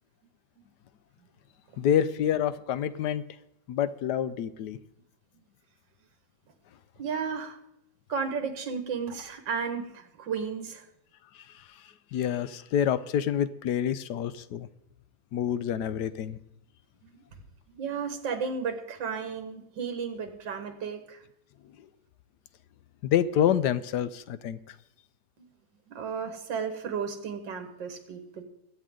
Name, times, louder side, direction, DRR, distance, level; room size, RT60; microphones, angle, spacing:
voice 1, 1.8-3.2 3.7-4.8 12.1-14.7 15.3-16.4 23.0-24.6, left 9 dB, 70° left, 14 dB, 1.2 m, -27 dB
voice 2, 7.0-7.6 8.1-10.9 17.7-21.2 25.4-25.5 25.9-28.4, right 6 dB, 75° right, 7 dB, 2.1 m, -33 dB
21.5 x 8.7 x 3.8 m, 0.78 s
omnidirectional pair, 2.0 m